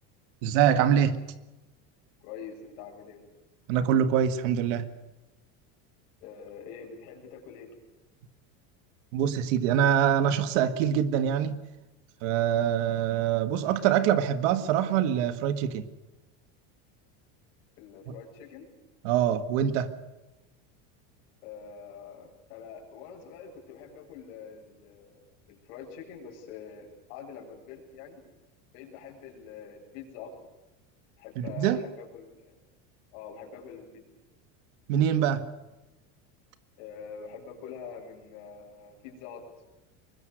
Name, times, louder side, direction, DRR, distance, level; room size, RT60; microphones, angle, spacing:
voice 1, 0.4-1.2 3.7-4.9 9.1-11.6 12.2-15.8 18.1-18.2 19.0-19.9 31.4-31.8 34.9-35.5, right 9 dB, 65° right, 1.9 m, -24 dB
voice 2, 2.2-3.2 6.2-7.7 17.8-18.6 21.4-25.2 25.5-28.2 28.7-30.3 31.2-32.5 33.1-34.0 36.8-39.4, left 6 dB, 70° left, 7.8 m, -45 dB
24.0 x 21.0 x 6.5 m
cardioid pair, 175°, 40 cm